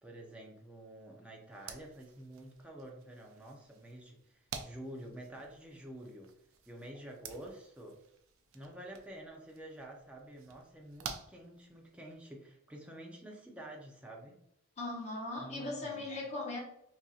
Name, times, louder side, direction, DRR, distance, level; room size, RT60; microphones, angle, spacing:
voice 1, 0.0-6.3 6.7-8.0 8.5-14.4 15.4-16.1, right 1 dB, 5° right, -1 dB, 0.5 m, -49 dB
sound 1, 1.5-12.1, right 6 dB, 70° right, 0.5 m, -51 dB
voice 2, 14.8-16.6, left 2 dB, 30° left, -3 dB, 0.9 m, -39 dB
4.1 x 2.5 x 2.4 m, 0.76 s
head